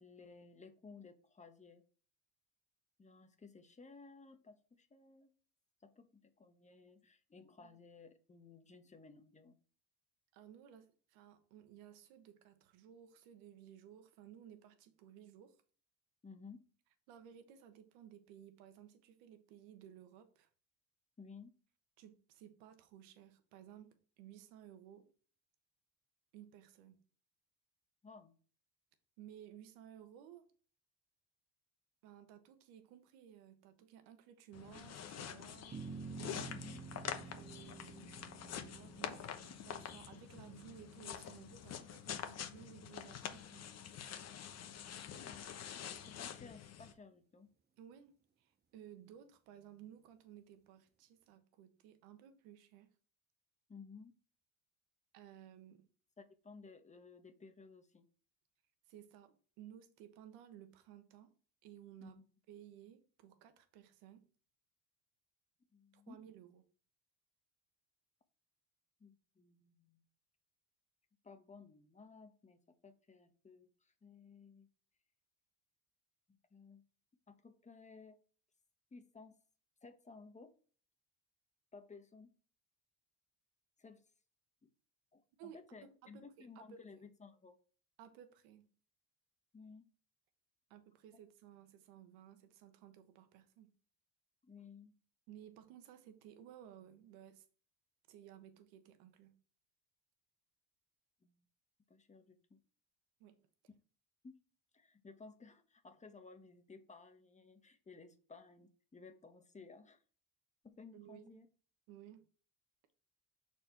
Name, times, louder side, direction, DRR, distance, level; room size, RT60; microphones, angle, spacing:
voice 1, 0.0-1.8 3.0-5.3 5.8-9.5 16.2-16.6 21.2-21.5 28.0-28.3 36.5-36.9 45.1-45.5 46.0-47.5 53.7-54.1 56.2-58.1 62.0-62.2 65.7-66.2 69.0-70.0 71.2-74.7 76.5-76.8 77.3-78.2 78.9-79.4 79.8-80.5 81.7-82.3 83.8-84.0 84.6-84.7 85.1-87.6 89.5-89.9 94.4-94.9 101.2-101.3 101.9-102.6 104.2-104.4 104.7-110.0 110.6-111.5, left 4 dB, 20° left, 1.1 m, -57 dB
voice 2, 10.3-15.6 17.1-20.5 22.0-25.1 26.3-27.0 29.2-30.5 32.0-35.8 37.3-43.7 47.8-52.9 55.1-55.9 58.9-61.3 61.6-62.2 62.5-64.2 65.9-66.6 85.4-86.8 88.0-88.7 90.7-93.7 95.3-97.4 98.1-99.4 103.2-103.4 110.9-111.5 111.9-112.2, right 10 dB, 90° right, 1.2 m, -57 dB
sound 1, 34.5-46.9, left 8 dB, 45° left, 1.0 m, -47 dB
sound 2, 35.7-42.3, right 5 dB, 30° right, 0.8 m, -51 dB
6.6 x 4.4 x 4.4 m
cardioid pair, 100°, 36 cm